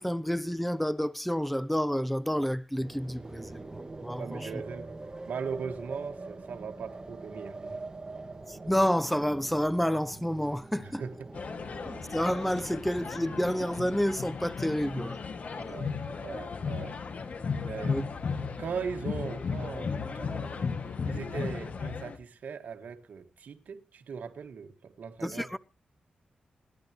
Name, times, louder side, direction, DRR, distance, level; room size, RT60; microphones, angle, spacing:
voice 1, 0.0-4.5 8.5-11.0 11.8-15.2 15.5-15.8 17.8-18.1 25.2-25.6, equal, 5° left, 0.7 m, -29 dB
sound 1, 2.8-13.8, right 3 dB, 25° right, 1.6 m, -44 dB
voice 2, 4.2-4.9 5.3-7.8 10.7-11.3 15.6-17.0 17.6-18.0 18.6-20.8 21.1-25.5, right 6 dB, 80° right, 1.7 m, -39 dB
sound 2, 11.3-22.2, left 5 dB, 60° left, 2.0 m, -35 dB
28.0 x 11.0 x 3.0 m
wide cardioid pair, 95°, 3 cm